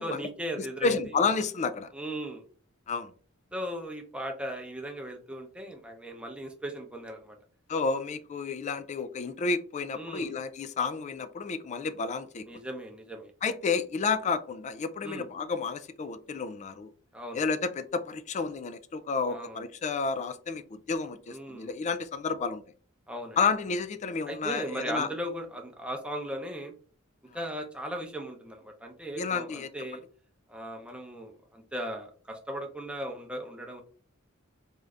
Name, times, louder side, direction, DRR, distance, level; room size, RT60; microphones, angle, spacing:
voice 1, 0.0-1.0 1.9-2.4 3.5-7.4 9.9-10.3 12.5-13.3 15.0-15.2 17.1-17.4 19.3-19.6 21.3-21.7 23.1-23.4 24.3-26.7 27.3-30.0 30.5-33.8, right 1 dB, 5° right, 0.7 m, -37 dB
voice 2, 0.6-1.9 2.9-3.1 7.7-12.5 13.4-16.9 17.3-22.6 23.4-25.1 29.2-29.7, left 4 dB, 35° left, 0.3 m, -31 dB
3.6 x 2.6 x 3.2 m
head